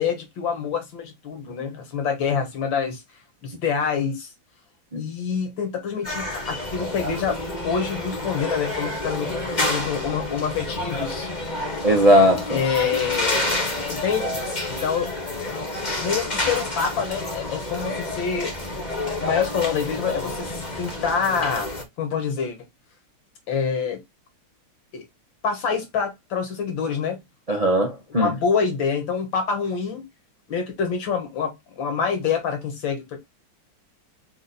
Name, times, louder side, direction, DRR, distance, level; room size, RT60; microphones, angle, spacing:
voice 1, 0.0-3.0 3.4-4.3 5.0-11.3 12.5-13.4 13.9-14.3 14.8-15.1 16.0-18.5 19.2-21.7 22.0-22.6 23.5-24.0 24.9-25.0 25.4-27.2 28.2-30.0 30.5-33.2, left 6 dB, 70° left, 2.0 m, -26 dB
sound 1, 6.0-21.8, left 1 dB, 30° left, 1.0 m, -29 dB
voice 2, 11.8-12.6 27.5-28.3, equal, 75° right, 0.3 m, -18 dB
4.2 x 2.5 x 4.0 m
omnidirectional pair, 2.2 m